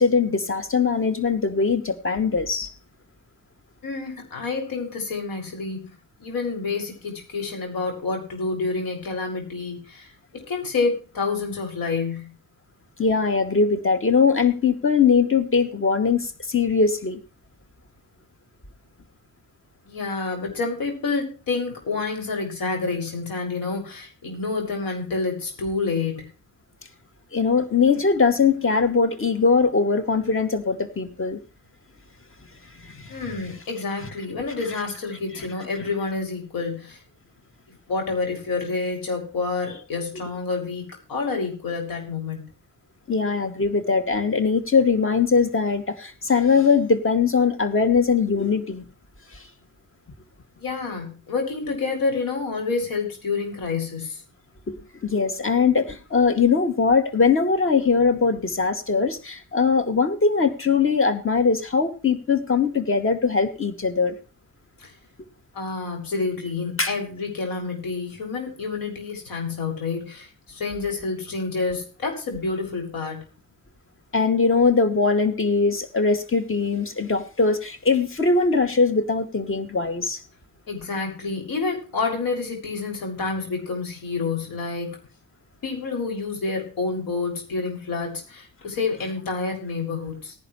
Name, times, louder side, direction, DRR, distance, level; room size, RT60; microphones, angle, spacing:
voice 1, 0.0-2.7 13.0-17.2 27.3-31.4 32.8-33.2 35.4-35.5 43.1-48.8 49.3-49.4 54.7-54.8 55.0-64.1 66.8-66.9 74.1-80.2, left 5 dB, 35° left, 8 dB, 2.5 m, -21 dB
voice 2, 3.8-5.9 6.2-12.3 19.8-26.3 33.1-37.0 37.9-42.5 50.6-54.2 64.8-64.9 65.5-73.2 80.7-85.0 85.6-90.4, left 4 dB, 75° left, 2 dB, 6.9 m, -28 dB
18.0 x 11.0 x 3.3 m, 0.34 s
cardioid pair, 105°, 35 cm